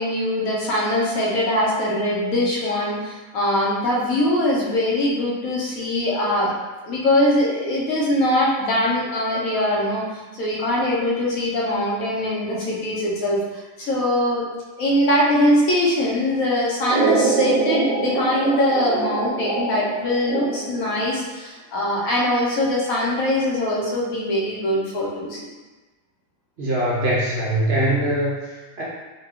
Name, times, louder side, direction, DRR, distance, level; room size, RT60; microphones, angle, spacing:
voice 1, 0.0-6.5 6.8-14.5 14.8-25.5, left 1 dB, 80° left, -4 dB, 1.2 m, -22 dB
sound 1, 16.9-20.9, right 4 dB, 90° right, 1.1 m, -24 dB
voice 2, 26.6-28.8, right 1 dB, 60° right, -6 dB, 0.7 m, -22 dB
2.8 x 2.2 x 3.4 m, 1.2 s
omnidirectional pair, 1.5 m